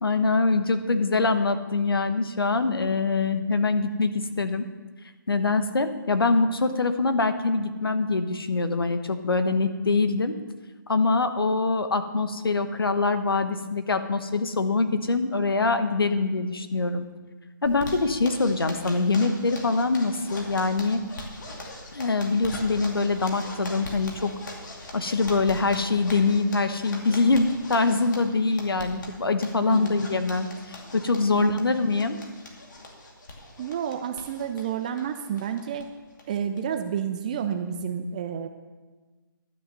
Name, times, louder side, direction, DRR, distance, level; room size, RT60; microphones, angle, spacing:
voice 1, 0.0-4.7 5.3-10.3 10.9-17.1 17.6-21.0 21.9-24.3 24.9-32.2, left 3 dB, 90° left, 9 dB, 1.1 m, -24 dB
Zipper (clothing), 17.7-35.8 36.2-36.3 36.6-36.7 37.0-37.4, left 1 dB, 55° left, 2.4 m, -41 dB
voice 2, 31.3-31.8 33.6-35.9 36.3-38.5, right 8 dB, 20° right, 8 dB, 0.4 m, -30 dB
12.0 x 6.4 x 6.7 m, 1.3 s
hypercardioid pair, 155°, 12 cm